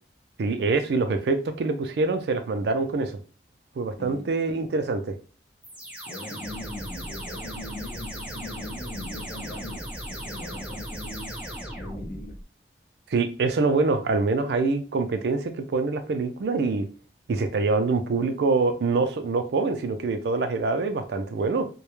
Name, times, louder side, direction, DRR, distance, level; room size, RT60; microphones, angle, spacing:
voice 1, 0.4-3.2 3.8-5.2 13.1-16.9 17.3-21.7, right 3 dB, 70° right, 0.3 m, -25 dB
sound 1, 5.6-12.4, equal, 5° right, 0.4 m, -37 dB
voice 2, 6.0-11.4 11.8-12.4, left 1 dB, 50° left, 0.6 m, -40 dB
2.2 x 2.0 x 3.0 m
head